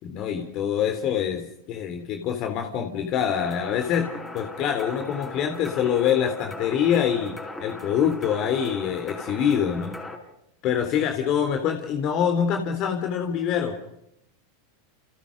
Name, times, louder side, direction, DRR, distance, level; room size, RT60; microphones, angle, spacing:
voice 1, 0.0-9.9 10.6-13.8, left 8 dB, 45° left, 5 dB, 3.5 m, -25 dB
sound 1, 3.3-10.2, left 2 dB, 10° left, 5.7 m, -38 dB
29.5 x 29.5 x 5.3 m, 0.82 s
hypercardioid pair, 95°, 0 cm